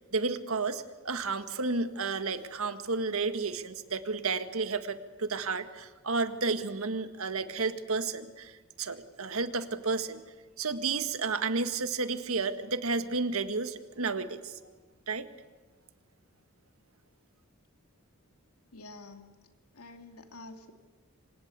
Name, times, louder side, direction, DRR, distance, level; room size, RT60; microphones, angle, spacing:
voice 1, 0.1-10.2 10.6-14.6 15.1-15.3, right 4 dB, 70° right, 9 dB, 1.7 m, -32 dB
voice 2, 18.7-19.5 19.7-20.7, left 2 dB, 85° left, 6 dB, 2.9 m, -48 dB
27.5 x 26.0 x 8.2 m, 1.3 s
head